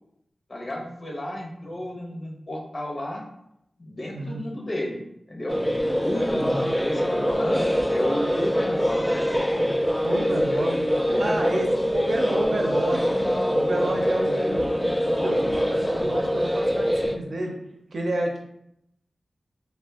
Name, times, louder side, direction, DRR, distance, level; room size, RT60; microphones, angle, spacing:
voice 1, 0.5-3.2 3.8-5.6 6.0-9.2 10.1-10.6 11.1-11.7, left 1 dB, 50° left, -1 dB, 0.8 m, -32 dB
voice 2, 4.1-4.5 6.3-6.7 10.0-10.9 11.2-13.2 13.5-14.7 15.2-17.6 17.9-18.4, right 1 dB, 75° right, 1 dB, 0.5 m, -30 dB
sound 1, 5.5-17.2, equal, 5° left, 0.3 m, -24 dB
2.5 x 2.3 x 3.5 m, 0.77 s
cardioid pair, 45°, 0 cm